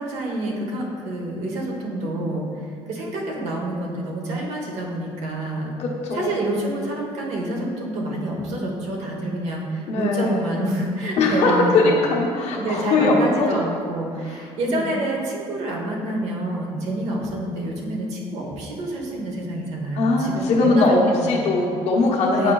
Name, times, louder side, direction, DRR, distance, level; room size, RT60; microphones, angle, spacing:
voice 1, 0.0-2.5 2.9-5.7 6.1-12.0 12.6-21.7 22.3-22.5, right 1 dB, 80° right, -1 dB, 1.1 m, -27 dB
voice 2, 5.8-6.4 9.9-10.5 11.2-13.5 14.7-14.9 19.9-22.5, left 3 dB, 75° left, -2 dB, 1.0 m, -20 dB
8.2 x 4.9 x 2.3 m, 2.3 s
cardioid pair, 130°, 11 cm